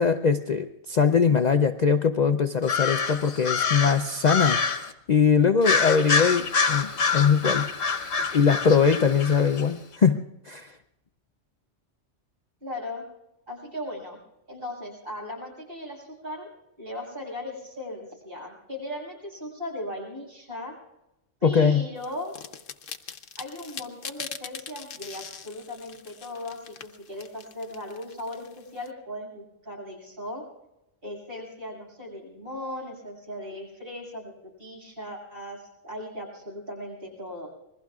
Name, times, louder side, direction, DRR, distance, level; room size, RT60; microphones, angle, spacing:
voice 1, 0.0-7.7 8.3-10.2 10.5-10.7 21.4-21.8, left 6 dB, 45° left, 7 dB, 0.6 m, -22 dB
sound 1, 2.6-4.9 5.6-9.6, left 5 dB, 65° left, 1.3 m, -26 dB
voice 2, 12.6-13.0 13.5-14.2 14.5-16.5 16.8-20.7 21.4-22.3 23.4-30.4 31.0-34.3 34.6-37.5, left 1 dB, 45° right, -2 dB, 7.0 m, -37 dB
sound 2, 22.0-28.9, left 7 dB, 90° left, 1.3 m, -42 dB
27.0 x 21.5 x 2.4 m, 0.90 s
omnidirectional pair, 1.3 m